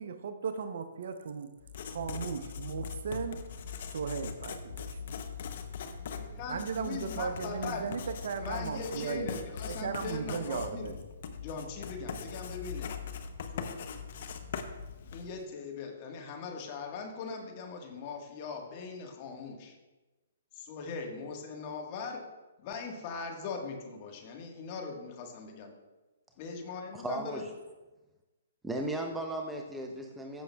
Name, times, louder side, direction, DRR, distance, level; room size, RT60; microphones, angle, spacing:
voice 1, 0.0-1.5 1.8-3.5 3.9-5.0 6.5-9.4 9.7-11.1, right 6 dB, 65° right, 9 dB, 0.7 m, -36 dB
Writing, 1.6-15.4, left 6 dB, 55° left, 0.7 m, -41 dB
voice 2, 6.2-8.1 8.4-11.0 11.4-13.0 13.5-13.7 15.1-19.8 20.5-22.2 22.6-25.7 26.4-27.5, left 4 dB, 40° left, 2 dB, 1.5 m, -40 dB
voice 3, 26.9-27.5 28.6-30.4, right 1 dB, 5° right, 2 dB, 0.7 m, -36 dB
14.5 x 6.2 x 2.3 m, 1.1 s
hypercardioid pair, 135°, 0 cm